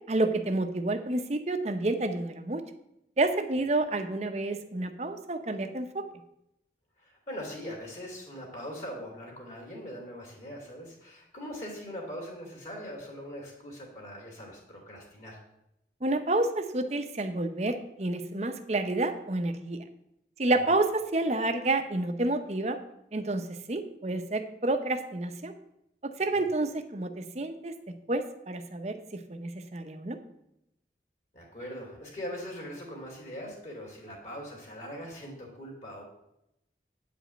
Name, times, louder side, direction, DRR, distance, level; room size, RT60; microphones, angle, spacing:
voice 1, 0.1-2.6 3.2-6.0 16.0-19.8 20.4-22.8 23.1-25.5 26.2-27.7 28.1-28.9 29.3-30.2, right 2 dB, 40° right, 8 dB, 0.8 m, -29 dB
voice 2, 7.0-15.4 26.3-26.4 31.3-36.0, equal, 40° left, -2 dB, 2.5 m, -41 dB
9.0 x 5.1 x 7.7 m, 0.83 s
head